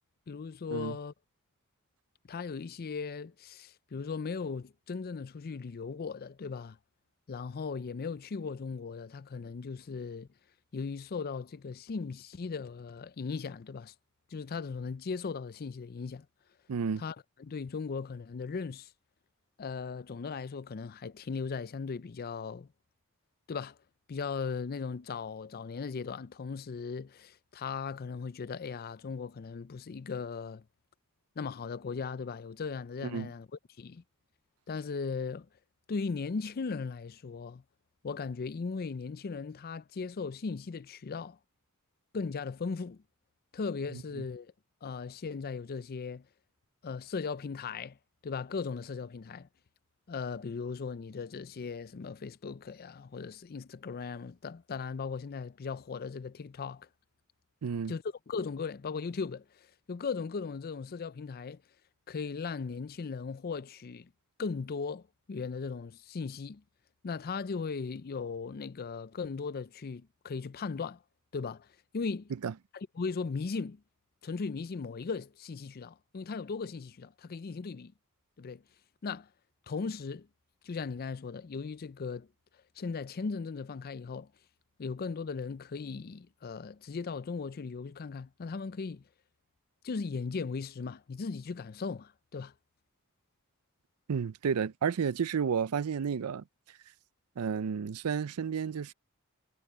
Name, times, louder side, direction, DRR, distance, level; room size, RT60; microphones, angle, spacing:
voice 1, 0.3-1.1 2.3-6.8 7.3-10.3 10.7-13.9 14.3-16.3 17.0-18.9 19.6-22.7 23.5-23.8 24.1-30.6 31.4-33.5 33.8-34.0 34.7-35.5 35.9-37.6 38.0-41.4 42.1-43.0 43.5-44.5 44.8-46.3 46.8-48.0 48.2-49.5 50.1-56.9 57.9-61.6 62.1-64.1 64.4-66.6 67.0-71.0 71.3-71.7 71.9-72.3 72.7-73.8 74.2-77.9 78.4-78.6 79.0-79.3 79.7-80.3 80.6-82.3 82.8-84.3 84.8-89.0 89.8-92.5, left 5 dB, 45° left, 0.5 m, -37 dB
voice 2, 16.7-17.0 33.1-33.3 57.6-57.9 72.4-72.5 94.1-96.4 97.4-98.9, right 6 dB, 85° right, 0.5 m, -31 dB
head